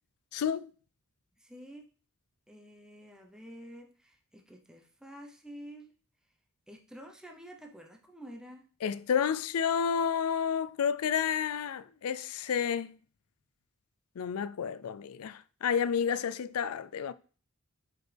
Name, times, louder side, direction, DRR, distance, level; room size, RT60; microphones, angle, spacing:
voice 1, 0.3-0.7 8.8-13.0 14.2-17.1, left 7 dB, 85° left, 0.4 m, -30 dB
voice 2, 1.4-1.9 2.5-5.9 6.7-8.7, equal, 5° right, 0.8 m, -49 dB
8.3 x 4.9 x 3.4 m
head